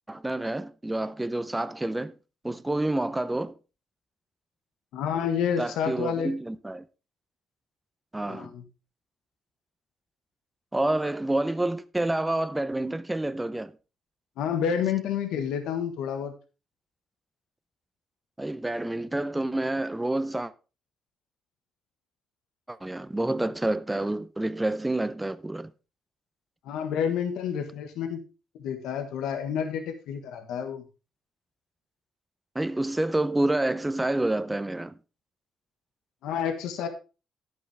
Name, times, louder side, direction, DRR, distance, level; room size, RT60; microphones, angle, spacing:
voice 1, 0.1-2.1 2.4-3.5 5.6-6.8 8.1-8.5 10.7-13.7 18.4-20.5 22.7-25.7 32.5-35.0, right 1 dB, 10° right, 0.6 m, -28 dB
voice 2, 4.9-6.3 8.3-8.6 14.4-16.3 26.6-28.2 28.6-30.8 36.2-36.9, left 8 dB, 90° left, 1.4 m, -29 dB
11.0 x 8.5 x 3.4 m
cardioid pair, 90°, 0 cm